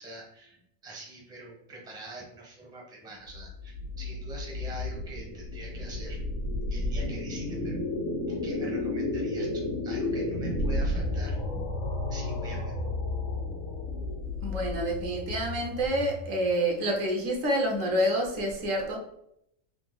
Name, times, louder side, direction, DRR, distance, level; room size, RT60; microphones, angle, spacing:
voice 1, 0.0-7.8 8.3-12.8 13.3-13.4, right 1 dB, 5° right, -2 dB, 0.7 m, -45 dB
sound 1, 3.3-16.5, left 2 dB, 60° left, 1.4 m, -32 dB
voice 2, 14.4-19.0, equal, 70° right, 0 dB, 1.2 m, -28 dB
3.9 x 2.8 x 3.8 m, 0.75 s
omnidirectional pair, 1.4 m